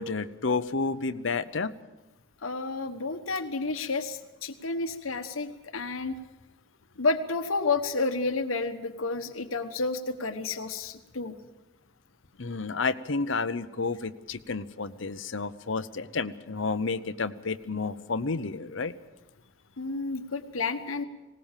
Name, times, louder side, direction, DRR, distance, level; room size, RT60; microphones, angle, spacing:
voice 1, 0.0-1.7 12.4-18.9, left 4 dB, 70° left, 12 dB, 0.8 m, -30 dB
voice 2, 2.4-6.2 7.0-11.3 19.8-21.0, left 3 dB, 90° left, 7 dB, 1.2 m, -30 dB
20.0 x 19.0 x 7.4 m, 1.0 s
head